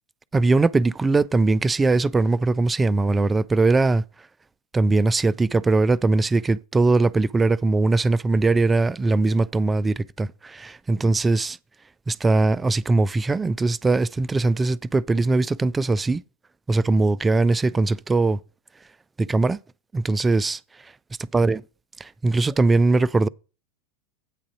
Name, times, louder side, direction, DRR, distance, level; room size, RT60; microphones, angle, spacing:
voice 1, 0.3-4.0 4.7-11.6 12.1-16.2 16.7-18.4 19.2-19.6 19.9-20.6 21.3-21.6 22.0-23.3, right 3 dB, 15° right, 0.3 m, -20 dB
9.0 x 3.7 x 6.8 m
figure-of-eight pair, 90°, 0 cm